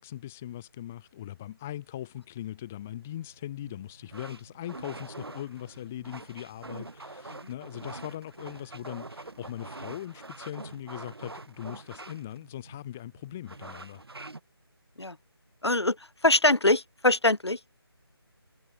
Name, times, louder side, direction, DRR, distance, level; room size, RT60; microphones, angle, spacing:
voice 1, 0.0-14.0, left 12 dB, 5° left, 0.4 m, -40 dB
sound 1, 2.8-14.4, right 2 dB, 70° right, 4.7 m, -45 dB
voice 2, 15.6-16.0 16.2-17.6, left 2 dB, 85° left, 2.4 m, -23 dB
figure-of-eight pair, 165°, 13 cm